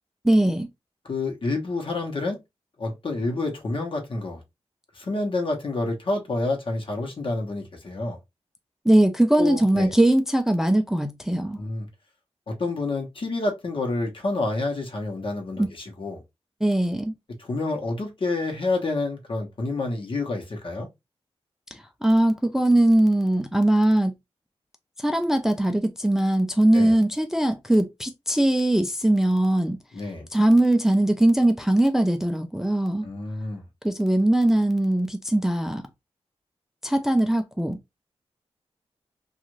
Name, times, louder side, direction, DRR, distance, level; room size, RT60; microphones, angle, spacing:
voice 1, 0.2-0.7 8.9-11.6 15.6-15.7 16.6-17.1 21.7-24.2 25.0-29.8 30.3-33.1 33.8-35.8 36.8-37.8, right 1 dB, 5° right, 0.4 m, -21 dB
voice 2, 1.0-2.4 2.8-4.4 4.9-8.2 9.4-9.9 11.6-11.9 12.5-16.2 17.4-20.9 26.7-26.9 29.9-30.3 33.0-33.6, left 2 dB, 55° left, 1.0 m, -28 dB
2.4 x 2.4 x 2.9 m
wide cardioid pair, 80°, 11 cm